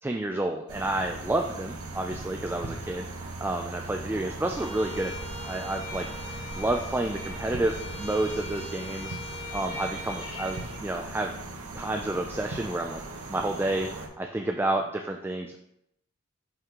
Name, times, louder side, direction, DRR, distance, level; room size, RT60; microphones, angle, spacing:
voice 1, 0.0-5.1 5.4-9.2 9.5-11.4 11.7-13.0 13.3-15.6, right 2 dB, 10° right, 3 dB, 0.3 m, -30 dB
sound 1, 0.7-14.1, right 2 dB, 80° right, 0.9 m, -39 dB
Bowed string instrument, 4.5-10.8, left 3 dB, 70° left, 1.6 m, -41 dB
5.5 x 5.5 x 3.6 m, 0.80 s
head